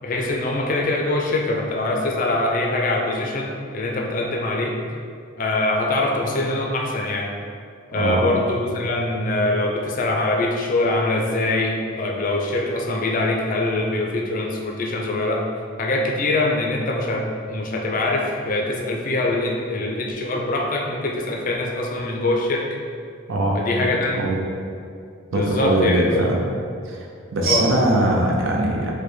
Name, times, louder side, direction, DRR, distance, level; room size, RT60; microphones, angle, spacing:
voice 1, 0.0-4.7 5.4-7.3 7.9-15.4 15.8-22.7 23.5-24.2 25.3-26.2 27.4-27.7, left 2 dB, 40° left, 0 dB, 0.4 m, -23 dB
voice 2, 25.3-26.4 26.8-27.1 27.3-28.9, right 1 dB, 70° right, 0 dB, 0.6 m, -20 dB
4.7 x 2.2 x 3.2 m, 2.3 s
head